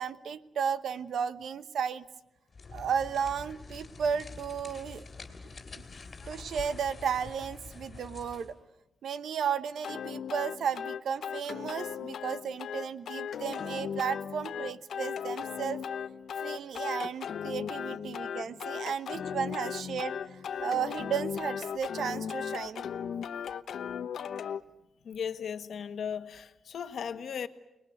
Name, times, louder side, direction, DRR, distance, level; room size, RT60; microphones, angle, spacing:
voice 1, 0.0-2.0 2.7-5.1 5.7-5.8 6.3-8.6 9.0-15.8 16.4-22.8, right 7 dB, 85° right, 1.1 m, -34 dB
sound 1, 2.5-8.6, left 4 dB, 30° left, 3.8 m, -46 dB
sound 2, 9.8-24.6, left 8 dB, 85° left, 1.0 m, -37 dB
voice 2, 25.0-27.5, left 7 dB, 70° left, 1.5 m, -36 dB
30.0 x 20.5 x 9.4 m
wide cardioid pair, 170°, 0 cm